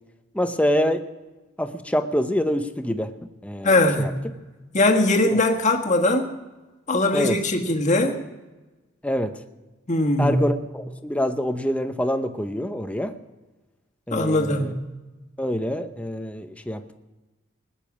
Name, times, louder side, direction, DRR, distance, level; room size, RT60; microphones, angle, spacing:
voice 1, 0.3-1.0 1.6-3.1 3.4-4.1 5.3-5.4 7.1-7.4 9.0-9.4 10.2-13.2 14.1-14.7 15.4-16.9, equal, 5° left, 8 dB, 0.7 m, -26 dB
voice 2, 3.6-4.2 4.7-6.3 6.9-8.2 9.9-10.4 14.1-14.8, left 2 dB, 40° left, 3 dB, 1.6 m, -21 dB
20.0 x 9.0 x 6.2 m, 1.2 s
head